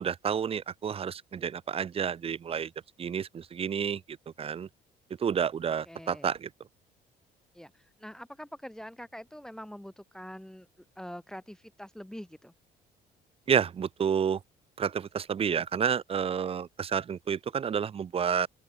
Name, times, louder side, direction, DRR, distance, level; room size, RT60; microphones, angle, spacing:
voice 1, 0.0-2.7 3.0-4.7 5.2-6.5 13.5-14.4 14.8-18.5, right 7 dB, 35° right, 0.8 m, -30 dB
voice 2, 5.9-6.3 7.5-12.5, equal, 5° left, 1.1 m, -45 dB
open air
cardioid pair, 110°, 17 cm